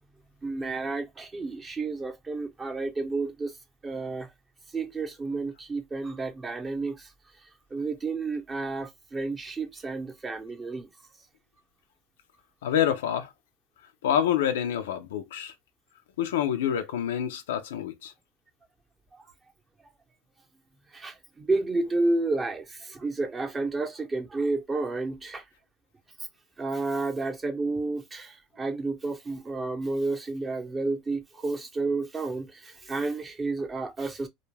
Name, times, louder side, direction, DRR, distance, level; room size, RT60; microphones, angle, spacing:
voice 1, 0.4-3.6 3.8-4.3 4.7-7.1 7.7-10.9 20.9-25.4 26.6-34.3, right 3 dB, 20° right, 0.6 m, -31 dB
voice 2, 12.6-13.3 14.0-15.5 16.2-18.1, left 9 dB, 90° left, 0.4 m, -27 dB
2.3 x 2.1 x 3.1 m
supercardioid pair, 110°, 0 cm